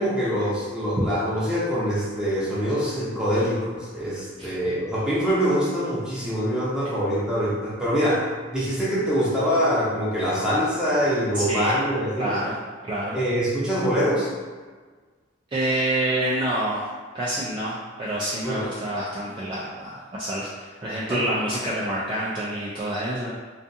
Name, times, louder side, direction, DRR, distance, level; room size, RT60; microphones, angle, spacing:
voice 1, 0.0-8.3 8.5-12.4 13.1-14.3 18.4-18.6 21.1-21.2, equal, 5° right, -9 dB, 0.7 m, -24 dB
voice 2, 11.3-11.8 12.2-13.2 15.5-16.9 17.1-23.4, right 1 dB, 25° right, -8 dB, 0.3 m, -27 dB
2.5 x 2.3 x 2.6 m, 1.4 s
head